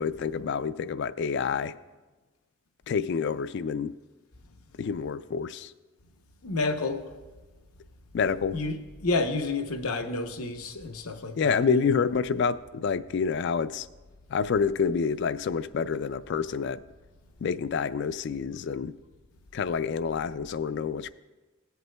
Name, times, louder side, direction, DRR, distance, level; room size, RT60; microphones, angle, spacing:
voice 1, 0.0-1.8 2.9-3.9 4.8-5.7 8.1-8.6 11.4-13.9 14.3-16.8 17.4-18.9 19.5-21.1, left 6 dB, 55° left, 0.3 m, -28 dB
voice 2, 6.4-7.0 8.5-11.8, left 3 dB, 90° left, 0.8 m, -30 dB
17.0 x 7.9 x 2.2 m
head